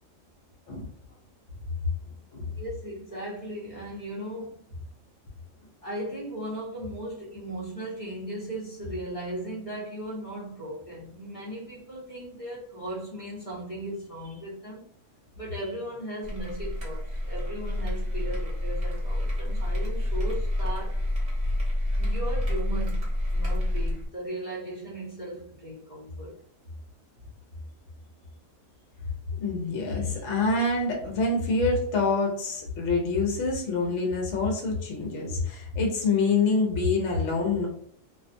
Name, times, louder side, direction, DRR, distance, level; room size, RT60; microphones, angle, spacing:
voice 1, 2.5-4.6 5.8-14.9 15.4-21.0 22.0-23.0 23.3-26.3, right 1 dB, 30° left, -6 dB, 0.8 m, -37 dB
sound 1, 16.2-24.1, left 1 dB, 35° right, 1.0 m, -28 dB
voice 2, 29.4-37.7, left 3 dB, 65° left, 0 dB, 0.9 m, -26 dB
2.5 x 2.3 x 2.5 m, 0.62 s
omnidirectional pair, 1.3 m